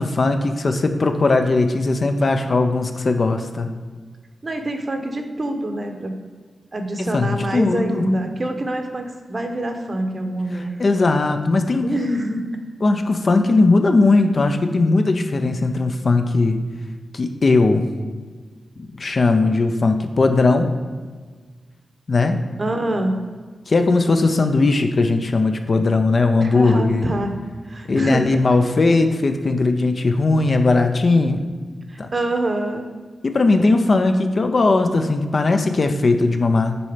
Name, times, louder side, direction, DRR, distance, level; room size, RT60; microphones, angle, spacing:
voice 1, 0.0-3.7 7.0-8.1 10.8-11.9 12.8-16.6 17.1-17.9 18.8-20.7 22.1-22.4 23.7-27.1 27.9-31.5 32.0-32.1 33.2-36.8, left 3 dB, 45° left, 6 dB, 0.5 m, -18 dB
voice 2, 4.4-6.2 6.7-10.8 11.8-12.4 13.3-13.4 22.6-23.2 26.4-27.4 27.6-28.2 31.9-32.9, right 1 dB, 35° right, 5 dB, 0.8 m, -25 dB
6.9 x 4.3 x 5.0 m, 1.5 s
wide cardioid pair, 110°, 0 cm